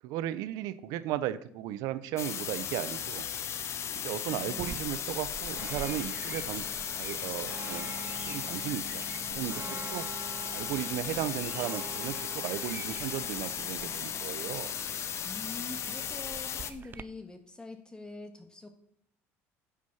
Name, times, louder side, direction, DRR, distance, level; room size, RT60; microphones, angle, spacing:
voice 1, 0.0-3.3 4.0-6.7 7.0-7.9 8.3-10.0 10.5-14.7, right 12 dB, 75° right, 15 dB, 0.8 m, -35 dB
sound 1, 2.2-16.7, left 8 dB, 45° left, 1.0 m, -36 dB
voice 2, 4.3-4.8 9.7-9.9 15.2-18.7, left 2 dB, 15° left, 5 dB, 1.8 m, -45 dB
sound 2, 4.6-17.0, right 6 dB, 30° right, 0.6 m, -45 dB
9.7 x 6.3 x 7.2 m, 0.66 s
supercardioid pair, 90°, 6 cm